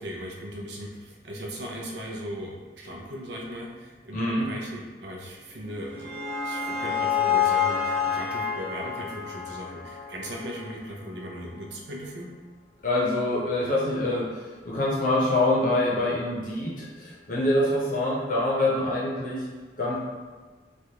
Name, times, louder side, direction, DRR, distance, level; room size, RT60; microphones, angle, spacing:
voice 1, 0.0-6.2 6.4-12.3, equal, 75° right, -1 dB, 0.6 m, -38 dB
voice 2, 4.1-4.5 12.8-19.5 19.8-20.0, left 1 dB, 50° left, -4 dB, 0.7 m, -25 dB
sound 1, 5.6-10.8, left 7 dB, 55° right, 1.1 m, -28 dB
3.1 x 2.4 x 2.8 m, 1.4 s
head